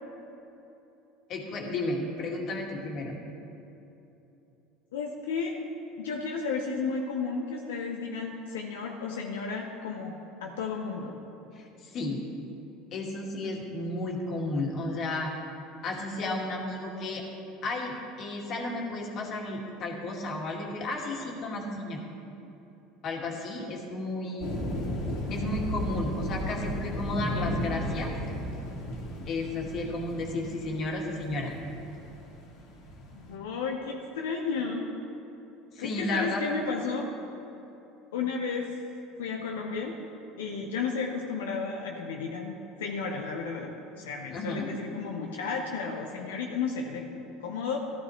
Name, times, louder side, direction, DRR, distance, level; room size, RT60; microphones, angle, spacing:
voice 1, 1.3-3.2 11.5-12.2 12.9-15.3 15.8-17.2 17.6-22.0 23.0-24.5 25.3-28.1 29.3-31.5 35.7-36.4 44.3-44.7, left 2 dB, 50° left, 0 dB, 2.3 m, -33 dB
voice 2, 4.9-5.7 6.0-11.2 23.6-23.7 33.1-35.0 35.8-37.1 38.1-38.7 39.2-40.0 40.4-47.8, left 5 dB, 85° left, 1 dB, 0.9 m, -33 dB
sound 1, 24.4-33.3, equal, 70° left, 2.4 m, -35 dB
14.0 x 14.0 x 3.3 m, 2.9 s
hypercardioid pair, 85°, 0 cm